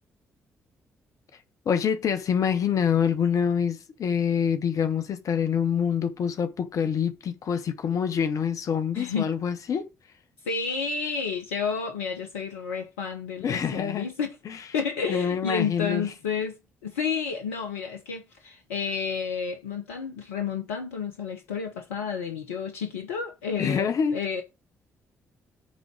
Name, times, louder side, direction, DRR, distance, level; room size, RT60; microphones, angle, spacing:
voice 1, 1.6-9.9 13.4-14.1 14.4-14.6 15.1-16.1 23.6-24.2, left 7 dB, 50° left, 1.2 m, -26 dB
voice 2, 8.9-9.3 10.4-14.4 14.7-16.6 16.8-24.4, left 6 dB, 75° left, 0.9 m, -31 dB
9.6 x 3.9 x 6.1 m
figure-of-eight pair, 40°, 7 cm